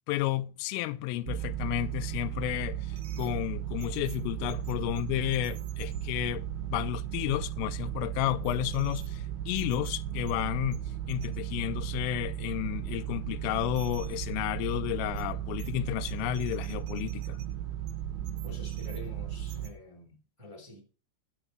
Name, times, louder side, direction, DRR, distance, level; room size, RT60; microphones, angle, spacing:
voice 1, 0.1-6.4 6.7-17.4, left 16 dB, 85° left, 3.3 m, -32 dB
sound 1, 1.3-19.7, right 11 dB, 70° right, 2.6 m, -35 dB
voice 2, 18.4-20.8, left 2 dB, 10° right, 2.2 m, -47 dB
10.0 x 9.1 x 6.1 m
omnidirectional pair, 5.7 m